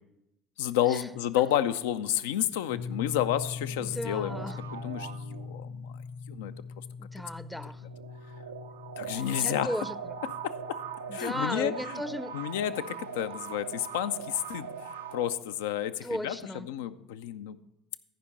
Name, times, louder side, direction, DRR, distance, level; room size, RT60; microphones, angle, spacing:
voice 1, 0.6-4.4 4.7-5.9 6.3-6.5 9.0-9.7 10.4-10.8 11.1-12.0 12.3-16.4 16.7-17.6, left 11 dB, 70° left, 12 dB, 0.4 m, -30 dB
sound 1, 2.7-12.3, left 5 dB, 45° left, 0.7 m, -42 dB
voice 2, 3.7-4.6 7.0-7.8 9.1-10.2 11.1-12.4 16.0-16.7, equal, 5° left, 15 dB, 0.5 m, -36 dB
sound 2, 4.3-5.9 7.3-15.3, right 6 dB, 85° right, 0.4 m, -41 dB
14.5 x 5.1 x 5.3 m, 0.89 s
figure-of-eight pair, 65°, 0 cm